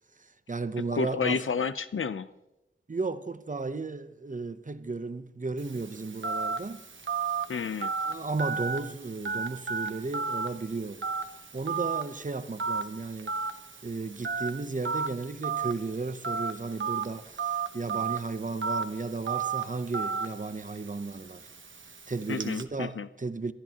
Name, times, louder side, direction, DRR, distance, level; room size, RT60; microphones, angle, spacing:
voice 1, 0.2-1.4 2.9-6.8 8.0-11.0 11.5-13.4 13.8-21.5 22.1-23.5, right 3 dB, 40° right, 0.8 m, -34 dB
voice 2, 0.9-2.3 7.5-7.9 22.3-23.1, left 5 dB, 85° left, 0.6 m, -30 dB
Telephone, 5.6-22.6, right 5 dB, 70° right, 1.0 m, -34 dB
29.5 x 13.0 x 2.9 m
wide cardioid pair, 80°, 20 cm